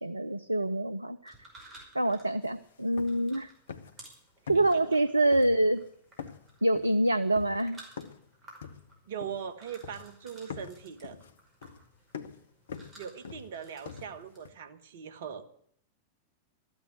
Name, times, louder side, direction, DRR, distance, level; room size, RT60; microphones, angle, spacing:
voice 1, 0.0-1.3 1.9-3.5 4.5-5.8 6.6-7.8, right 1 dB, 85° right, 13 dB, 0.5 m, -26 dB
sound 1, 1.2-14.4, right 2 dB, 25° right, 5.4 m, -56 dB
sound 2, 2.4-2.5 2.8-3.4 3.7-4.1 4.5-5.0 5.3-5.9 6.2-8.3 8.6-9.6 9.8-10.2 10.5-14.5, left 6 dB, 65° left, 1.0 m, -45 dB
voice 2, 4.5-5.0 9.1-11.2 13.0-15.4, right 7 dB, 55° right, 10 dB, 1.5 m, -41 dB
13.5 x 8.8 x 9.4 m, 0.67 s
figure-of-eight pair, 90°, 0 cm